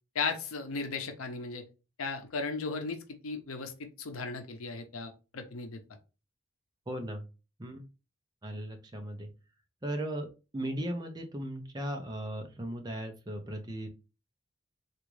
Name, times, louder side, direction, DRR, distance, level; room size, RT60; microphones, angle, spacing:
voice 1, 0.1-1.6 2.0-5.8, left 4 dB, 90° left, 6 dB, 0.6 m, -36 dB
voice 2, 6.9-7.2 7.6-7.9 8.4-9.3 9.8-13.9, right 1 dB, 20° right, 4 dB, 0.6 m, -37 dB
3.5 x 2.4 x 3.1 m, 0.30 s
head